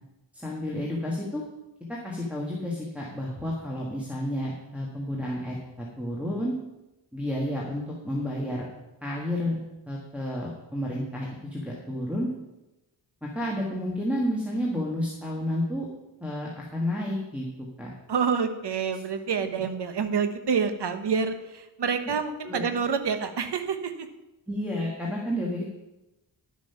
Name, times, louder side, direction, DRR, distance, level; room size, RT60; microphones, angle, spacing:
voice 1, 0.3-1.4 1.9-6.5 7.1-8.6 9.0-9.6 9.9-12.3 13.2-15.9 16.2-17.9 18.9-19.0 19.6-19.7 22.0-22.1 22.4-22.7 24.5-25.6, left 1 dB, 5° right, -4 dB, 1.6 m, -31 dB
voice 2, 18.1-24.1, right 6 dB, 60° right, 9 dB, 1.1 m, -27 dB
11.0 x 7.3 x 5.7 m, 0.99 s
wide cardioid pair, 140°, 47 cm